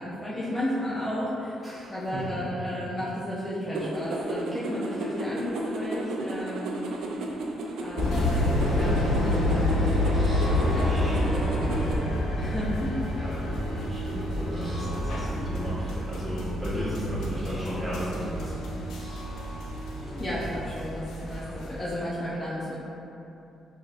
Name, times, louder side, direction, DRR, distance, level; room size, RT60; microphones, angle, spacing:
voice 1, 0.0-1.6 1.9-6.8 7.8-13.1 20.2-22.8, equal, 25° left, -8 dB, 0.5 m, -33 dB
voice 2, 1.6-2.2 13.1-18.8, equal, 10° right, -11 dB, 1.3 m, -35 dB
sound 1, 3.7-12.0, right 1 dB, 75° right, 0.3 m, -33 dB
sound 2, 8.0-21.9, left 2 dB, 80° left, 0.5 m, -29 dB
sound 3, 8.0-21.6, right 2 dB, 35° right, 1.0 m, -35 dB
3.7 x 2.7 x 2.4 m, 2.9 s
cardioid pair, 90°, 0 cm